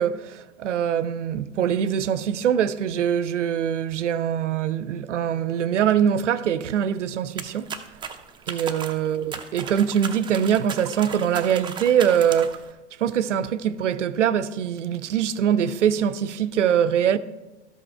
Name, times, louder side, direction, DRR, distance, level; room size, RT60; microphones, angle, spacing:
voice 1, 0.0-7.7 8.5-12.6 13.0-17.2, right 9 dB, 85° right, 0.5 m, -23 dB
sound 1, 7.4-12.7, right 6 dB, 15° right, 0.5 m, -36 dB
13.0 x 5.4 x 4.3 m
hypercardioid pair, 100°, 35 cm